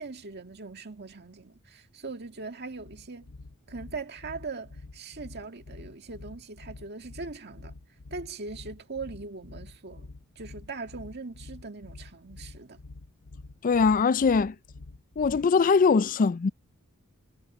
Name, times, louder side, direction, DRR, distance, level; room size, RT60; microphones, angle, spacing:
voice 1, 0.0-3.3 3.7-7.8 8.1-12.8, right 4 dB, 50° right, 2.0 m, -40 dB
sound 1, 2.7-15.6, left 3 dB, 75° left, 0.8 m, -47 dB
voice 2, 13.6-14.6 15.2-16.5, left 5 dB, 40° left, 0.4 m, -22 dB
head